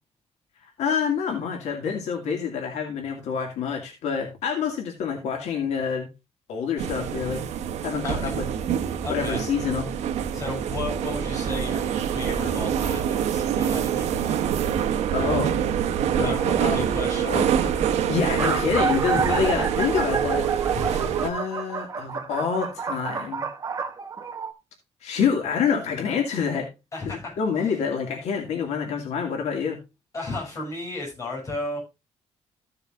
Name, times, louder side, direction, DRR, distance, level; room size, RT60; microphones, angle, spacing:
voice 1, 0.6-6.1 6.5-7.4 7.8-8.4 9.1-9.9 15.1-15.6 16.1-16.8 17.1-17.5 18.1-20.5 21.2-23.5 25.0-26.7 27.1-29.8, left 6 dB, 80° left, 2 dB, 2.3 m, -27 dB
sound 1, 6.8-21.3, right 9 dB, 85° right, 1.1 m, -26 dB
voice 2, 9.0-9.5 10.3-14.4 16.2-17.3 17.6-17.7 19.1-19.5 20.7-21.2 26.9-27.7 30.1-31.8, left 2 dB, 30° left, -3 dB, 6.7 m, -34 dB
sound 2, 16.6-16.7 17.4-17.5 17.7-17.8 18.1-24.5, right 5 dB, 30° right, 1.2 m, -29 dB
15.5 x 6.9 x 2.5 m, 0.26 s
cardioid pair, 165°, 11 cm